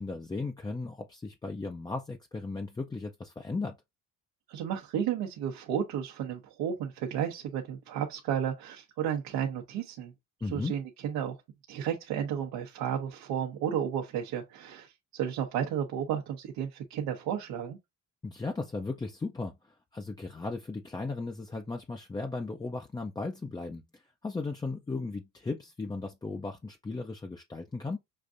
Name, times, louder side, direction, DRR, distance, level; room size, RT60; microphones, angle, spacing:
voice 1, 0.0-3.8 10.4-10.7 18.2-19.6 19.9-28.0, left 3 dB, 10° left, 0.4 m, -36 dB
voice 2, 4.5-10.1 10.5-11.3 11.7-17.8, right 9 dB, 85° right, 1.0 m, -33 dB
6.6 x 2.5 x 2.5 m
cardioid pair, 95°, 37 cm